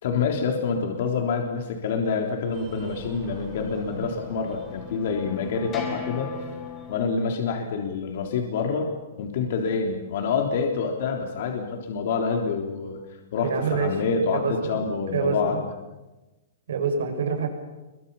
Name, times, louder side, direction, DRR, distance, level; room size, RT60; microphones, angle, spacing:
voice 1, 0.0-6.3 6.9-8.9 9.2-13.0 13.3-15.7, left 5 dB, 50° left, 2 dB, 3.6 m, -27 dB
Breathing, 2.5-7.7, right 4 dB, 15° right, 5.9 m, -46 dB
sound 1, 3.6-7.1, left 5 dB, 15° left, 4.9 m, -39 dB
voice 2, 13.5-14.0 14.3-14.7 15.1-15.6 16.7-17.5, right 5 dB, 80° right, 5 dB, 6.7 m, -26 dB
27.5 x 24.0 x 7.2 m, 1.1 s
hypercardioid pair, 170°, 0 cm